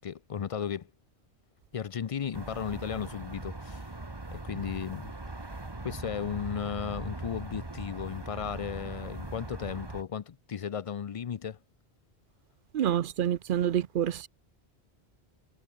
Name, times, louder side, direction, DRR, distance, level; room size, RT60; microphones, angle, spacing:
voice 1, 0.0-0.9 1.7-4.0 4.3-5.1 5.8-11.6, left 8 dB, 50° left, 0.4 m, -35 dB
sound 1, 2.3-10.0, right 2 dB, 25° right, 1.5 m, -40 dB
voice 2, 12.7-14.3, right 10 dB, 60° right, 0.7 m, -27 dB
omnidirectional pair, 1.1 m